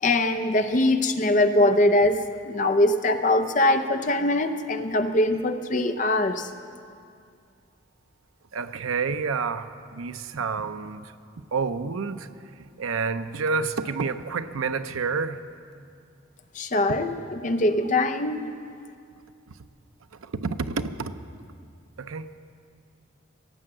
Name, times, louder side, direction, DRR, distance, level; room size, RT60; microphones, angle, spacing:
voice 1, 0.0-6.5 16.5-18.4, left 1 dB, 35° left, 8 dB, 0.6 m, -22 dB
voice 2, 8.5-11.1 11.5-12.3 12.8-15.4 20.2-21.1 22.0-22.3, right 4 dB, 85° right, 10 dB, 0.6 m, -29 dB
17.0 x 7.9 x 7.7 m, 2.3 s
head